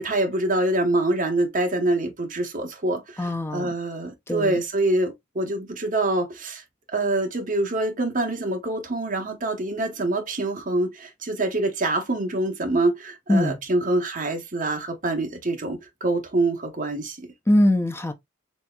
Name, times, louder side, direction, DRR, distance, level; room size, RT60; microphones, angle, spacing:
voice 1, 0.0-6.6 6.9-17.3, right 2 dB, 40° right, 1.1 m, -25 dB
voice 2, 3.2-3.7 4.3-4.6 13.3-13.6 17.5-18.1, left 1 dB, 10° left, 0.6 m, -22 dB
4.2 x 3.4 x 2.3 m
head